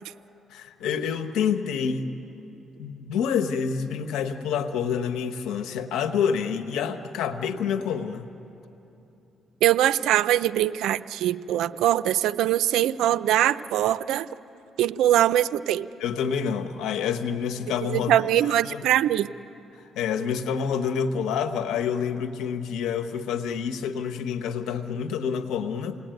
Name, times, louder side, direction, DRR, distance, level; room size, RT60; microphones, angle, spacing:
voice 1, 0.5-2.1 2.8-8.3 16.0-18.1 18.4-18.8 19.9-26.0, left 7 dB, 90° left, 9 dB, 1.3 m, -28 dB
voice 2, 9.6-14.3 14.8-15.9 17.8-19.3, right 12 dB, 85° right, 14 dB, 0.5 m, -22 dB
28.5 x 19.0 x 9.2 m, 3.0 s
cardioid pair, 90°, 0 cm